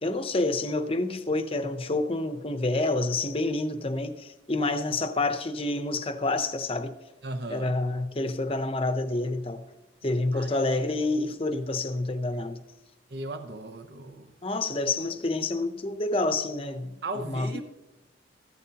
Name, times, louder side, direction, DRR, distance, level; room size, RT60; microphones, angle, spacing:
voice 1, 0.0-6.9 7.5-9.6 10.0-12.6 14.4-16.9 17.3-17.6, left 2 dB, 30° left, 0.7 m, -28 dB
voice 2, 7.2-7.7 10.3-10.5 13.1-14.3 17.0-17.6, right 2 dB, 55° right, 0.8 m, -36 dB
14.5 x 12.5 x 2.9 m
head